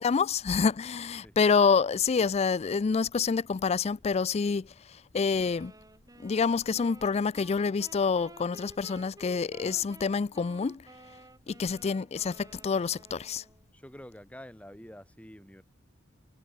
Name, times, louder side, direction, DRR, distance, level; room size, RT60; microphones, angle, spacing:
voice 1, 0.0-4.7 5.1-5.7 6.2-10.8 11.5-13.4, left 5 dB, 35° left, 0.4 m, -27 dB
sound 1, 5.3-13.7, right 2 dB, 20° right, 3.8 m, -53 dB
voice 2, 13.7-15.6, equal, 5° left, 7.4 m, -47 dB
head